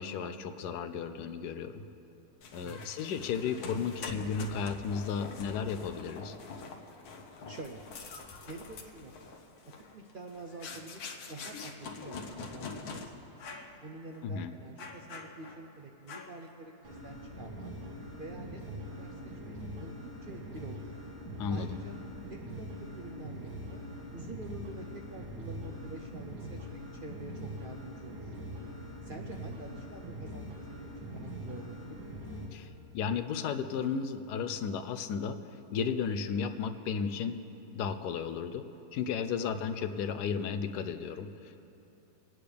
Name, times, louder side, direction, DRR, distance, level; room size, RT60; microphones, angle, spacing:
voice 1, 0.0-1.8 2.5-6.4 14.2-14.5 21.4-21.8 32.5-35.4 35.7-37.4 37.7-38.7 38.9-41.6, left 6 dB, 90° left, 9 dB, 1.2 m, -34 dB
sound 1, 2.4-13.1 13.4-13.7 14.1-14.3 14.8-15.7 16.1-16.5, left 4 dB, 70° left, 1.4 m, -44 dB
voice 2, 7.5-7.8 8.5-9.4 9.9-11.7 12.0-13.1 13.8-17.7 18.2-20.9 21.5-22.0 22.3-23.8 24.1-28.3 29.0-32.0, right 2 dB, 60° right, 3 dB, 0.5 m, -47 dB
sound 2, 16.8-32.5, equal, 85° right, 2.1 m, -43 dB
27.0 x 9.3 x 3.4 m, 2.9 s
omnidirectional pair, 1.7 m